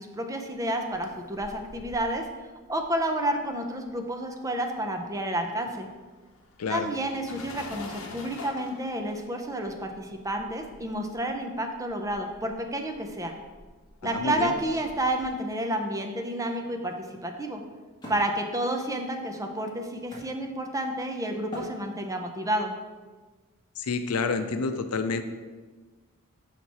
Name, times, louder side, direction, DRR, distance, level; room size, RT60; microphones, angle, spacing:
voice 1, 0.0-2.2 2.7-5.9 6.7-13.3 14.0-16.9 17.2-17.6 18.1-22.7, right 1 dB, 15° right, 4 dB, 0.6 m, -30 dB
sound 1, 0.7-4.3 4.6-15.3, left 2 dB, 65° left, 1.0 m, -48 dB
voice 2, 14.0-14.5 23.8-25.2, left 4 dB, 85° left, 9 dB, 0.6 m, -29 dB
Wood, 18.0-21.0 21.5-22.4, left 1 dB, 20° left, 2.0 m, -44 dB
6.3 x 5.8 x 4.2 m, 1.3 s
head